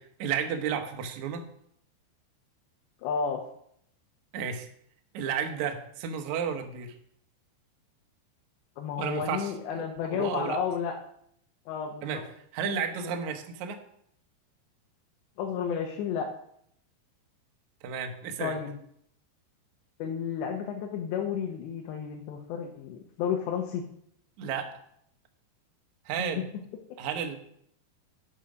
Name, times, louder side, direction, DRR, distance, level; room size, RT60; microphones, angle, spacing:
voice 1, 0.0-1.5 4.3-4.7 5.1-6.9 9.0-10.6 12.0-12.2 12.5-13.8 17.8-18.6 24.4-24.7 26.1-26.5 27.0-27.4, right 7 dB, 70° right, 5 dB, 1.8 m, -32 dB
voice 2, 3.0-3.4 8.8-10.9 11.7-12.2 15.4-16.3 18.4-18.8 20.0-23.8, left 7 dB, 85° left, 1 dB, 3.3 m, -32 dB
11.5 x 7.2 x 5.1 m, 0.70 s
omnidirectional pair, 5.0 m